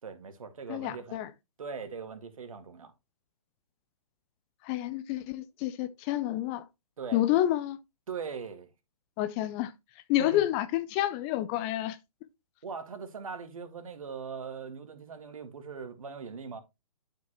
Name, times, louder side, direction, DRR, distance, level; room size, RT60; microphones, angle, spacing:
voice 1, 0.0-1.2 1.6-2.9 7.0-7.2 8.1-8.7 10.3-10.4 12.6-16.6, right 5 dB, 65° right, 2.0 m, -40 dB
voice 2, 0.7-1.3 4.6-6.7 7.1-7.8 9.2-9.7 10.1-12.0, left 13 dB, 20° left, 0.4 m, -29 dB
11.5 x 5.1 x 3.0 m
figure-of-eight pair, 130°, 19 cm